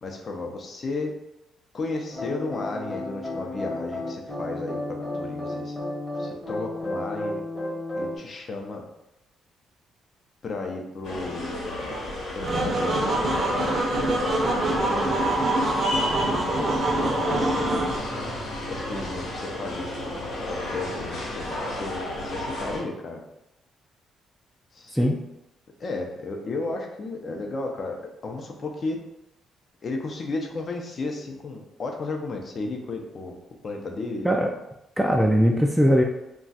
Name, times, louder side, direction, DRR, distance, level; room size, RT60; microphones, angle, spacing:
voice 1, 0.0-1.1 1.7-5.7 6.1-7.4 8.0-8.8 10.4-12.0 12.3-15.3 16.4-17.7 18.7-23.2 24.7-25.1 25.8-28.0 28.2-29.0 29.8-33.4 33.6-34.3, left 3 dB, 45° left, 2 dB, 0.6 m, -34 dB
sound 1, 2.1-8.2, left 1 dB, 15° left, 0.9 m, -32 dB
sound 2, 11.0-22.8, left 1 dB, 70° left, 1.0 m, -32 dB
sound 3, 12.4-18.0, right 2 dB, 45° right, 0.6 m, -25 dB
voice 2, 35.0-36.0, equal, ahead, 0 dB, 0.3 m, -20 dB
2.3 x 2.3 x 4.0 m, 0.89 s
cardioid pair, 90°, 0 cm